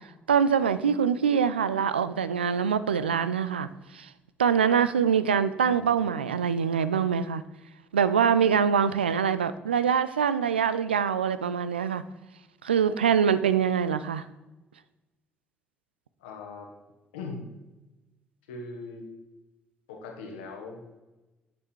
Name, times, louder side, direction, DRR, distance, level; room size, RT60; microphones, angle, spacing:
voice 1, 0.3-3.7 3.9-4.1 4.4-7.4 7.9-12.0 12.6-14.2, right 7 dB, 85° right, 14 dB, 0.3 m, -24 dB
voice 2, 16.2-16.7 17.1-17.5 18.5-19.1 19.9-20.8, left 3 dB, 75° left, 2 dB, 1.4 m, -40 dB
9.4 x 6.8 x 4.6 m, 1.1 s
figure-of-eight pair, 45°, 5 cm